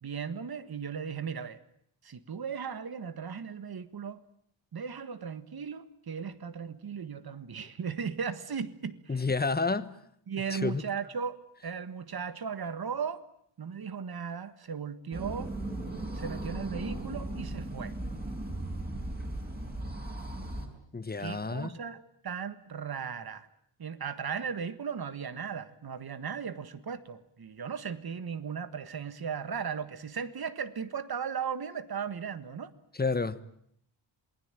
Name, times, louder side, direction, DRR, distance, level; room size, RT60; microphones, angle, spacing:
voice 1, 0.0-1.6 2.0-4.2 4.7-9.2 10.3-11.4 11.6-13.2 13.6-15.6 16.1-17.9 21.2-23.5 23.8-32.7, right 6 dB, 50° right, 1.7 m, -37 dB
voice 2, 9.1-10.0 10.5-10.8 20.9-21.7 32.9-33.4, left 4 dB, 20° left, 1.2 m, -30 dB
sound 1, 15.1-20.7, right 1 dB, 20° right, 5.0 m, -37 dB
27.5 x 20.5 x 9.1 m
wide cardioid pair, 145°, 48 cm